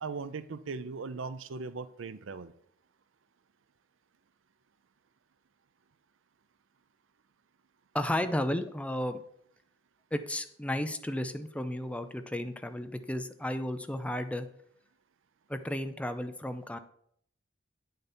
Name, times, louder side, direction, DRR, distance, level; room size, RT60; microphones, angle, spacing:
voice 1, 0.0-2.5, right 4 dB, 80° right, 14 dB, 0.5 m, -38 dB
voice 2, 7.9-9.2 10.1-14.5 15.5-16.8, left 1 dB, 5° left, 9 dB, 0.5 m, -33 dB
9.2 x 6.7 x 4.4 m, 0.67 s
head